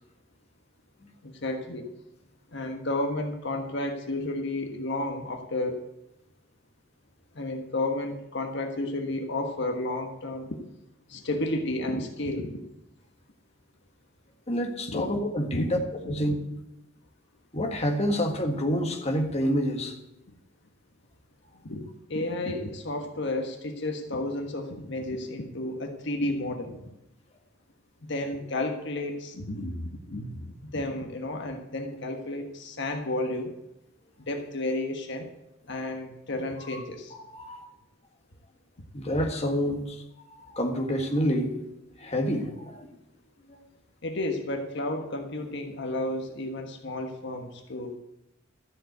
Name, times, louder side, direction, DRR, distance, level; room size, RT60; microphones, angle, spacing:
voice 1, 1.2-1.9 2.5-5.8 7.3-10.6 11.1-12.6 14.9-15.1 15.5-16.1 21.6-21.8 22.1-26.9 28.0-33.6 34.3-35.3 35.7-37.1 44.0-48.0, left 1 dB, 60° left, 4 dB, 1.4 m, -32 dB
voice 2, 14.5-15.8 16.1-16.4 17.5-19.9 36.7-36.8 37.1-37.7 38.9-40.0 40.3-41.5 42.0-42.9 43.5-43.6, equal, 35° left, 2 dB, 1.7 m, -28 dB
13.5 x 7.5 x 8.0 m, 0.86 s
head